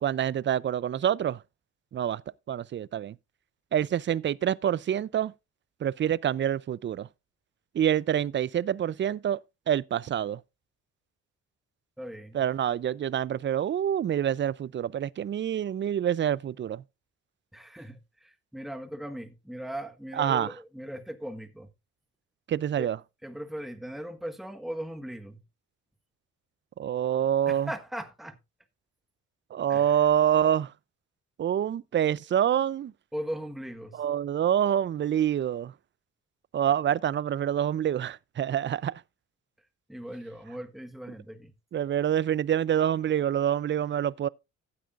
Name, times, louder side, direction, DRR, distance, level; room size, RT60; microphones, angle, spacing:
voice 1, 0.0-1.4 1.9-2.2 2.5-3.1 3.7-5.3 5.8-7.1 7.7-9.4 9.7-10.4 12.3-16.8 20.2-20.5 22.5-23.0 26.8-27.7 29.5-30.7 31.4-32.9 34.0-35.7 36.5-38.9 41.7-44.3, right 10 dB, 40° right, 0.5 m, -26 dB
voice 2, 12.0-12.4 17.5-21.7 22.8-22.9 23.2-25.4 27.5-28.4 29.7-30.1 33.1-34.0 39.9-41.5, equal, ahead, 1.4 m, -38 dB
15.0 x 8.4 x 2.5 m
cardioid pair, 90°, 30 cm